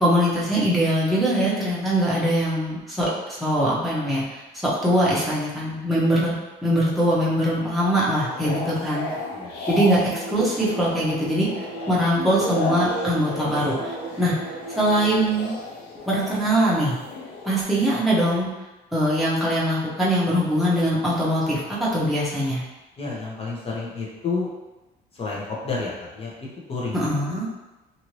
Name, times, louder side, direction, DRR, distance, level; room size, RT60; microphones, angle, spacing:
voice 1, 0.0-6.4 6.6-9.1 9.7-14.3 14.8-15.5 16.1-17.0 17.4-18.5 18.9-22.6 26.9-27.5, equal, ahead, -8 dB, 1.0 m, -22 dB
sound 1, 8.1-17.6, left 3 dB, 85° left, 0.6 m, -34 dB
sound 2, 8.7-9.7 10.1-12.6 13.0-15.6 15.9-16.1, right 2 dB, 40° right, 0.4 m, -38 dB
voice 2, 9.1-9.6 23.0-24.5 25.1-26.3 26.7-27.0, left 4 dB, 35° left, -4 dB, 1.0 m, -30 dB
sound 3, 12.2-15.1, right 3 dB, 70° right, 0.8 m, -34 dB
2.7 x 2.7 x 3.1 m, 1.1 s
cardioid pair, 110°, 17 cm